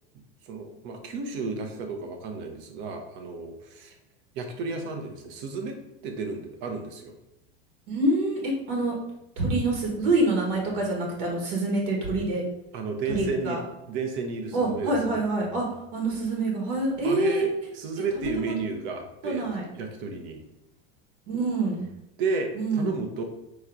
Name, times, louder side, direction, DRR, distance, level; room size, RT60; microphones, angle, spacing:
voice 1, 0.4-4.0 4.3-5.8 6.0-7.2 12.7-13.6 13.9-14.9 17.0-17.5 17.7-19.5 19.8-20.4 22.2-23.2, right 4 dB, 40° right, 4 dB, 0.7 m, -32 dB
voice 2, 7.9-8.9 9.4-12.4 13.1-13.6 14.5-15.7 15.9-17.5 18.2-18.3 19.2-19.6 21.3-21.9 22.5-22.9, right 2 dB, 60° right, -1 dB, 1.3 m, -26 dB
4.5 x 3.0 x 3.7 m, 0.87 s
supercardioid pair, 165°, 30 cm